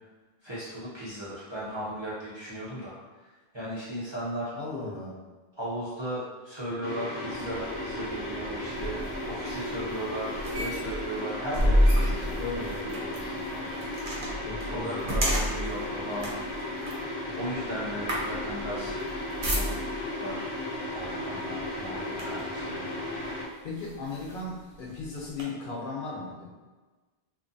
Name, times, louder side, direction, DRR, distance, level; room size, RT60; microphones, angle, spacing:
voice 1, 0.4-3.3 3.5-4.5 5.5-9.0 9.3-13.8 14.6-16.3 17.0-19.0 19.4-19.9 20.2-20.5 20.9-23.0, right 1 dB, 35° right, -9 dB, 0.5 m, -37 dB
voice 2, 4.5-5.2 12.4-12.8 14.4-15.2 15.7-15.8 23.6-26.5, left 3 dB, 60° left, -4 dB, 0.7 m, -36 dB
sound 1, 6.8-23.5, left 1 dB, 85° left, 1.0 m, -35 dB
sound 2, 7.3-20.1 21.0-21.2 21.6-22.6 23.2-23.3 23.8-25.4, equal, 60° right, 0.8 m, -31 dB
2.5 x 2.3 x 2.5 m, 1.3 s
omnidirectional pair, 1.0 m